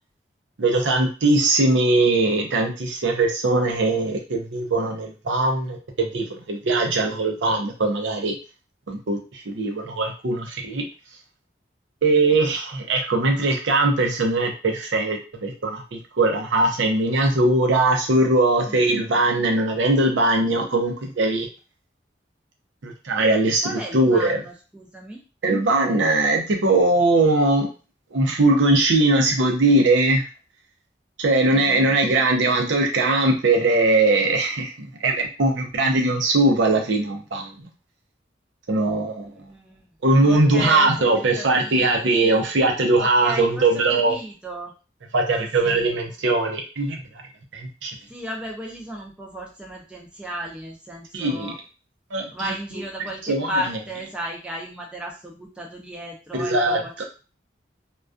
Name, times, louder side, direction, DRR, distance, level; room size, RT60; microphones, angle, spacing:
voice 1, 0.6-8.3 8.9-10.9 12.0-21.5 22.8-24.4 25.4-27.7 28.1-30.3 31.2-37.7 38.7-39.3 40.0-44.2 45.1-47.0 47.5-47.9 51.1-51.5 52.1-52.5 53.2-53.5 56.4-57.0, right 2 dB, 80° right, 3 dB, 0.5 m, -20 dB
voice 2, 18.7-19.0 23.6-25.2 31.5-31.9 39.2-39.9 40.2-41.1 41.4-42.4 43.0-44.7 45.4-45.9 48.1-51.6 52.3-57.0, equal, 5° right, -2 dB, 0.4 m, -34 dB
2.3 x 2.2 x 2.4 m, 0.33 s
head